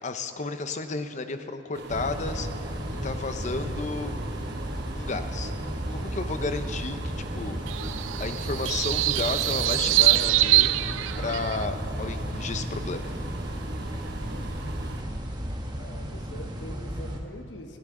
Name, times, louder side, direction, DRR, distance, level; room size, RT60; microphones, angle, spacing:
voice 1, 0.0-2.5 3.0-4.1 4.9-5.5 5.9-7.6 8.2-10.8 11.2-13.1, left 3 dB, 40° left, 9 dB, 0.7 m, -32 dB
sound 1, 1.7-15.0, right 2 dB, 60° right, 0.9 m, -40 dB
sound 2, 1.9-17.2, equal, 20° right, 1.1 m, -34 dB
sound 3, 7.7-11.7, right 18 dB, 80° right, 0.3 m, -24 dB
voice 2, 15.7-17.8, left 1 dB, 65° left, 5 dB, 1.2 m, -43 dB
20.0 x 14.5 x 3.8 m, 2.9 s
head